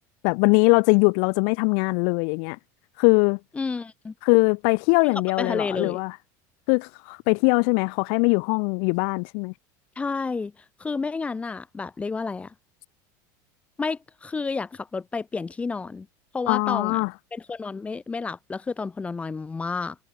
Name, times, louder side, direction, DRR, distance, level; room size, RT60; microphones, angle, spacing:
voice 1, 0.2-2.6 3.0-3.4 4.2-6.1 6.7-9.5 16.5-17.1, left 40 dB or more, 65° left, 0.3 m, -21 dB
voice 2, 3.5-4.1 5.1-6.0 10.0-10.5 10.8-12.5 13.8-16.1 16.3-17.0 17.3-20.0, left 4 dB, 15° left, 0.5 m, -30 dB
supercardioid pair, 135°, 10 cm